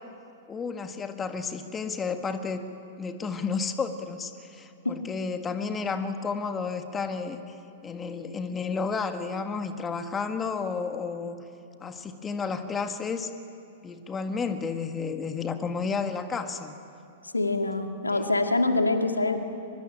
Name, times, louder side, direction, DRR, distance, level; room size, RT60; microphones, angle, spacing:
voice 1, 0.5-2.7 3.0-7.6 7.8-11.4 11.8-13.3 13.8-16.7 18.1-18.2, left 5 dB, 20° left, 8 dB, 1.7 m, -32 dB
voice 2, 17.3-19.4, left 2 dB, 90° left, 5 dB, 2.0 m, -25 dB
24.0 x 22.5 x 9.0 m, 2.7 s
figure-of-eight pair, 105°, 0 cm